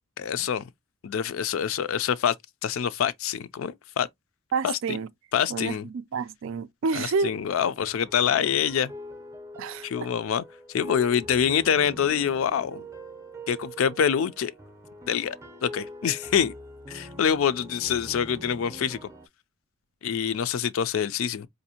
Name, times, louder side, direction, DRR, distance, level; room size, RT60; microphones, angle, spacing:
voice 1, 0.2-0.6 1.0-2.3 2.6-4.1 4.6-4.8 5.3-5.9 6.9-8.9 9.8-10.4 10.7-12.8 13.5-14.5 15.1-15.4 15.6-16.5 16.9-19.1 20.0-21.5, left 8 dB, 65° left, 0.4 m, -25 dB
voice 2, 4.5-5.1 5.5-7.4 9.6-9.9, right 5 dB, 65° right, 0.4 m, -29 dB
sound 1, 7.1-19.3, equal, 15° right, 0.5 m, -43 dB
4.8 x 2.6 x 2.7 m
head